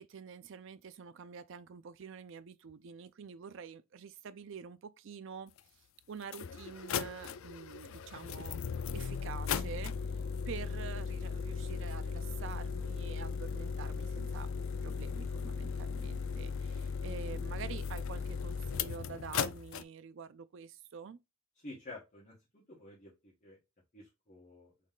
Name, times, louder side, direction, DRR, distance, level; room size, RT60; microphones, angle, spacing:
voice 1, 0.0-5.5 6.1-8.6 8.9-10.0 10.5-14.5 14.8-21.2, right 6 dB, 60° right, 0.4 m, -47 dB
sound 1, 5.6-5.7 6.2-19.8, left 5 dB, 70° left, 0.4 m, -37 dB
voice 2, 21.6-23.6 23.9-24.7, left 2 dB, 35° left, 1.4 m, -50 dB
4.1 x 3.1 x 3.6 m
head